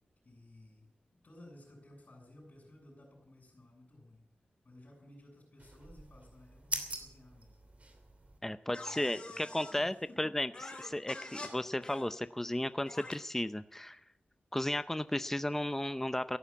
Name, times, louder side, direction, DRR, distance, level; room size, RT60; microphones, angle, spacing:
voice 1, 0.2-4.2 4.6-7.6 8.8-9.4 9.7-10.2, left 1 dB, 45° left, -4 dB, 6.9 m, -57 dB
sound 1, 5.6-8.4, right 2 dB, 40° right, 2.8 m, -43 dB
voice 2, 8.4-14.0 14.5-16.4, left 1 dB, 10° left, 13 dB, 0.6 m, -34 dB
sound 2, 8.7-9.8 10.5-11.5 11.8-12.0 12.9-13.1, left 2 dB, 30° left, 3.4 m, -46 dB
14.5 x 11.5 x 8.4 m, 0.72 s
wide cardioid pair, 90°, 4 cm